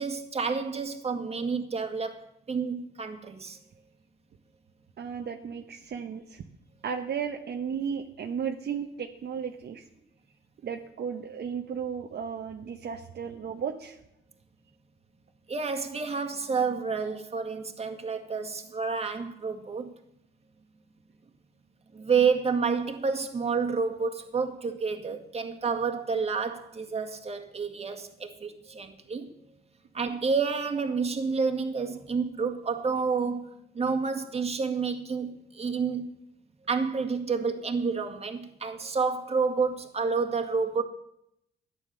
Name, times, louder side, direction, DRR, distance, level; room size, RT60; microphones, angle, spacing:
voice 1, 0.0-2.2 2.5-3.6 15.5-19.9 21.9-29.3 29.9-36.0 36.7-40.8, right 5 dB, 30° right, 5 dB, 2.0 m, -29 dB
voice 2, 5.0-6.4 6.8-9.8 10.6-14.0, right 7 dB, 55° right, 4 dB, 1.1 m, -34 dB
12.0 x 9.8 x 6.8 m, 0.77 s
cardioid pair, 90°, 20 cm